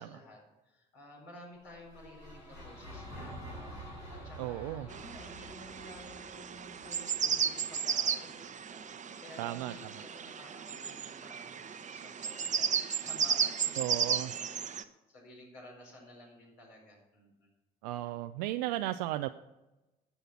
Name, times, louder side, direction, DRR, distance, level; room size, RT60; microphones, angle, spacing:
voice 1, 0.0-17.5, left 1 dB, 65° left, -1 dB, 4.7 m, -53 dB
sound 1, 1.6-7.8, equal, 85° left, 5.1 m, -48 dB
voice 2, 4.4-4.9 9.4-9.7 13.8-14.3 17.8-19.3, right 15 dB, 75° right, 9 dB, 0.4 m, -35 dB
sound 2, 4.9-14.8, right 7 dB, 35° right, 0.8 m, -34 dB
11.5 x 7.8 x 5.8 m, 1.0 s
hypercardioid pair, 55°, 21 cm